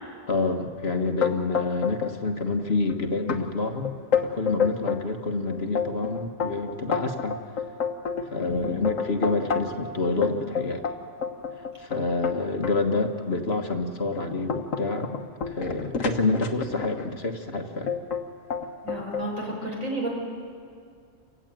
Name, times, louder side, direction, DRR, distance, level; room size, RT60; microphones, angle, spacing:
voice 1, 0.3-3.9 4.2-7.4 8.3-10.8 11.8-15.1 15.5-17.9, left 3 dB, 50° left, 5 dB, 1.6 m, -27 dB
sound 1, 1.2-2.1 2.4-2.9 3.3-3.4 3.8-5.0 5.5-9.8 10.2-12.8 13.4-13.5 14.0-17.1 17.9-18.2 18.5-19.3, left 6 dB, 65° left, 1.7 m, -28 dB
voice 2, 18.8-20.1, right 2 dB, 65° right, -2 dB, 6.3 m, -32 dB
29.0 x 16.0 x 9.1 m, 2.3 s
omnidirectional pair, 1.4 m